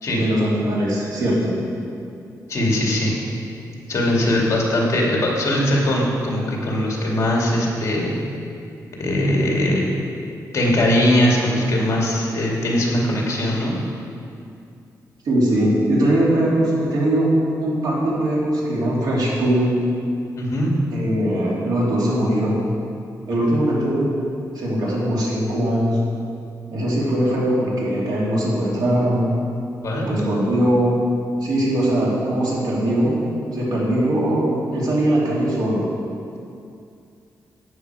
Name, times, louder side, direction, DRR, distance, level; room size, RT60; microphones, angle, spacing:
voice 1, 0.1-1.5 15.2-17.3 17.6-19.7 20.9-22.6 23.3-24.1 24.5-26.0 26.7-29.3 30.0-30.9 31.4-33.2 33.5-35.8, right 1 dB, 80° right, -5 dB, 3.0 m, -20 dB
voice 2, 2.5-3.2 3.9-8.1 9.0-9.8 10.5-13.8 20.4-20.7 29.8-30.1, left 1 dB, 45° left, -2 dB, 2.3 m, -20 dB
11.0 x 9.2 x 4.8 m, 2.5 s
wide cardioid pair, 145°, 7 cm